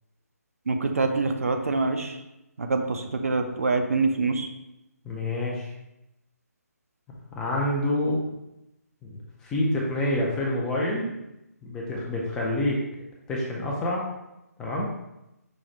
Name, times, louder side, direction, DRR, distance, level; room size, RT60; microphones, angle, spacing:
voice 1, 0.7-2.2 2.6-4.5, right 3 dB, 60° right, 5 dB, 0.5 m, -25 dB
voice 2, 5.0-5.7 7.3-8.2 9.0-9.2 9.4-11.1 11.6-12.8 13.3-14.1 14.6-14.9, left 1 dB, 5° left, -3 dB, 0.4 m, -27 dB
5.2 x 2.3 x 4.2 m, 0.91 s
figure-of-eight pair, 145°, 9 cm